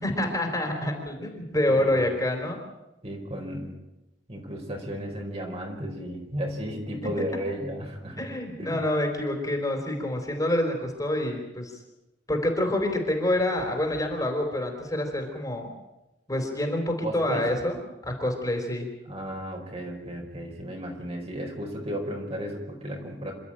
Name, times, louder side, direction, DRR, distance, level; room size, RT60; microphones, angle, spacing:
voice 1, 0.0-2.6 7.0-7.1 8.2-11.7 12.3-15.7 16.3-18.9, left 1 dB, 20° left, 3 dB, 4.2 m, -27 dB
voice 2, 1.7-2.0 3.0-3.7 4.3-8.2 8.6-8.8 17.0-17.5 19.1-23.3, equal, 35° right, 1 dB, 4.6 m, -34 dB
27.5 x 13.0 x 8.9 m, 0.97 s
head